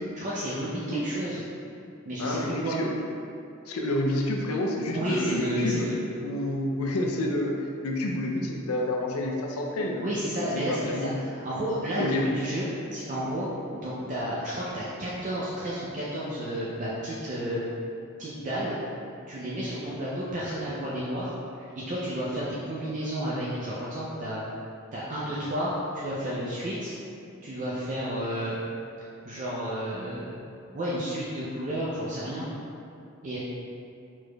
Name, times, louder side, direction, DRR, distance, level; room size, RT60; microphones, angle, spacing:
voice 1, 0.2-1.4 2.1-2.8 4.9-6.0 10.0-17.6 18.2-18.8 19.3-24.4 24.9-26.9 27.4-28.6 29.3-30.4 30.7-32.5 33.2-33.4, equal, 35° right, -8 dB, 0.5 m, -31 dB
voice 2, 2.2-2.9 3.7-5.9 6.2-7.6 7.8-10.0 10.5-11.2 12.0-12.2, left 1 dB, 80° left, 1 dB, 0.5 m, -29 dB
4.6 x 4.3 x 2.3 m, 2.7 s
head